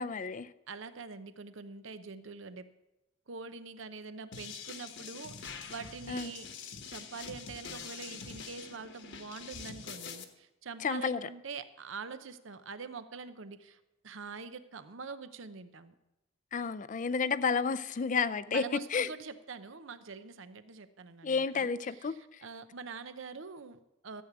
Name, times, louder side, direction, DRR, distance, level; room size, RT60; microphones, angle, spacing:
voice 1, 0.0-0.5 6.1-6.3 10.8-11.3 16.5-19.1 21.2-22.4, left 5 dB, 40° left, 0.4 m, -31 dB
voice 2, 0.7-2.7 3.3-6.5 6.9-15.9 18.5-24.2, right 4 dB, 70° right, 0.7 m, -45 dB
sound 1, 4.3-10.2, left 6 dB, 60° left, 1.1 m, -45 dB
14.0 x 8.3 x 6.0 m
head